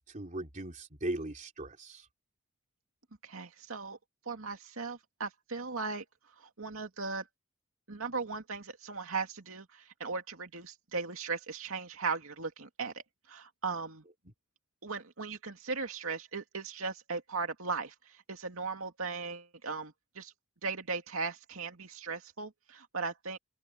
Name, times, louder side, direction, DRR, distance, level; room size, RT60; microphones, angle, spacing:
voice 1, 0.0-2.1 14.2-14.3, right 1 dB, 35° right, 3.3 m, -39 dB
voice 2, 3.2-4.0 4.3-6.0 6.4-7.2 7.9-13.0 13.3-14.0 14.8-17.9 18.3-20.3 20.6-23.4, right 4 dB, 80° right, 2.4 m, -37 dB
open air
head